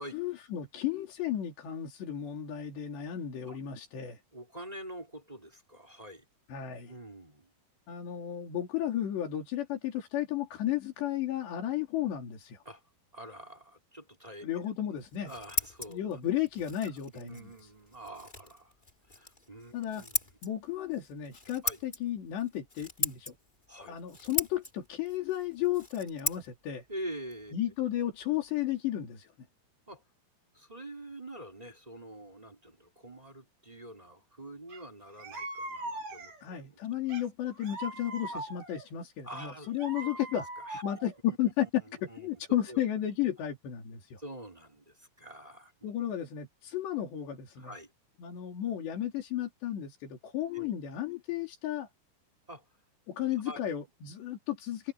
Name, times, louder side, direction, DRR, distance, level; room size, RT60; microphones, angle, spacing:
voice 1, 0.0-4.2 6.5-6.9 7.9-12.6 14.4-15.3 15.9-17.7 19.7-20.1 20.4-23.4 23.8-26.9 27.5-29.3 36.4-40.5 40.8-44.2 45.8-47.7 48.2-51.9 53.1-54.9, left 11 dB, 85° left, 5.6 m, -33 dB
voice 2, 4.3-6.2 6.9-7.5 12.6-12.8 13.1-14.4 14.9-16.0 17.1-18.7 19.1-20.3 21.6-21.8 23.7-23.9 26.9-27.5 29.9-30.0 30.5-36.3 36.6-36.7 38.3-38.4 39.2-39.7 40.0-40.1 40.6-40.8 41.8-42.3 42.7-42.8 44.2-45.7 47.6-47.9 50.5-50.7 52.5-52.6 53.4-53.6, right 1 dB, 10° right, 3.4 m, -45 dB
Scissors, 15.0-28.5, left 2 dB, 15° left, 2.4 m, -40 dB
sound 1, 34.7-34.8 35.2-36.5 37.1-38.9 39.4-41.1, right 2 dB, 50° right, 7.0 m, -41 dB
open air
omnidirectional pair, 4.8 m